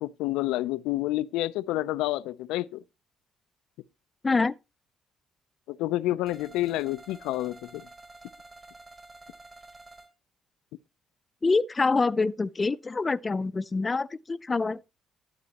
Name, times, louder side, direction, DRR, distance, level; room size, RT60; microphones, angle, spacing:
voice 1, 0.0-2.8 5.7-7.9, left 16 dB, 90° left, 0.4 m, -29 dB
voice 2, 4.2-4.6 11.4-14.8, left 3 dB, 30° left, 0.5 m, -26 dB
sound 1, 6.3-10.1, right 2 dB, 30° right, 2.2 m, -50 dB
12.5 x 8.0 x 2.9 m
cardioid pair, 75°, 0 cm